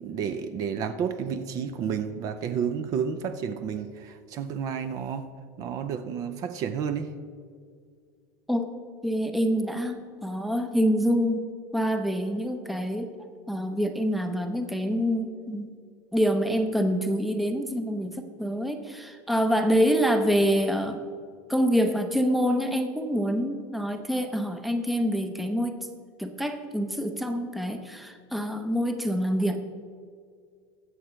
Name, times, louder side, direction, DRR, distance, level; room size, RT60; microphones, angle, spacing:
voice 1, 0.0-5.3 5.6-7.1, right 7 dB, 35° right, 10 dB, 0.6 m, -31 dB
voice 2, 9.0-13.1 13.5-15.7 16.1-21.0 21.5-25.8 26.2-29.6, equal, ahead, 6 dB, 0.7 m, -26 dB
22.0 x 7.4 x 3.2 m, 2.1 s
supercardioid pair, 155°, 10 cm